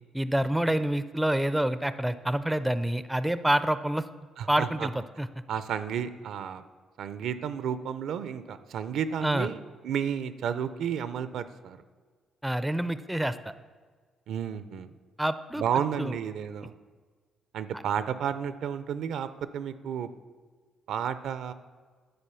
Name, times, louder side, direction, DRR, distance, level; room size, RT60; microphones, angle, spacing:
voice 1, 0.1-4.1 4.5-4.9 5.2-5.3 9.2-9.5 12.4-13.4 15.2-15.6 16.0-16.1, right 1 dB, 5° right, 13 dB, 0.4 m, -27 dB
voice 2, 4.4-4.9 5.5-6.6 7.0-11.8 14.3-14.9 15.6-16.7 17.5-20.1 20.9-21.5, right 8 dB, 75° right, 13 dB, 0.5 m, -32 dB
10.5 x 4.3 x 6.8 m, 1.5 s
cardioid pair, 90°, 0 cm